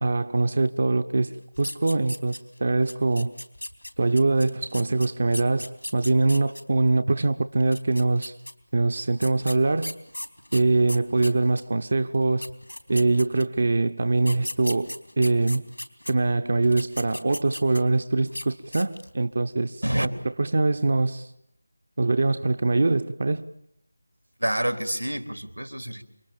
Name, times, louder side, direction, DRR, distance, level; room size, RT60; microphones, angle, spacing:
voice 1, 0.0-1.3 1.6-3.3 4.0-8.4 8.7-9.9 10.5-12.4 12.9-15.6 16.1-19.8 20.4-21.3 22.0-23.4, right 3 dB, 45° right, 0.9 m, -23 dB
sound 1, 1.6-2.6 2.9-6.6 7.6-8.5 9.2-11.7 12.1-12.2 12.4-13.6 14.2-16.1 16.6-18.0 18.3-18.5 18.7-19.2, left 1 dB, 80° left, 3.8 m, -36 dB
voice 2, 24.4-26.0, right 1 dB, 90° right, 3.6 m, -27 dB
29.0 x 24.5 x 7.2 m
figure-of-eight pair, 165°, 0 cm